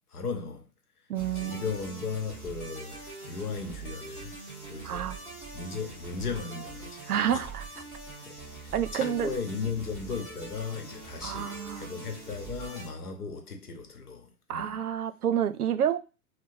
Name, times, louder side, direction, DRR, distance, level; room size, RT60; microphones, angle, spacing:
voice 1, 0.1-0.7 1.3-4.3 4.7-5.2 5.5-7.5 8.2-8.4 8.6-14.8, left 5 dB, 85° left, 0.9 m, -36 dB
sound 1, 1.1-12.9, right 3 dB, 5° left, 1.0 m, -43 dB
voice 2, 1.1-1.6 4.8-5.2 7.1-7.6 8.7-9.3 11.2-11.9 14.5-16.0, right 9 dB, 80° right, 0.6 m, -29 dB
3.9 x 2.1 x 2.6 m
hypercardioid pair, 125°, 44 cm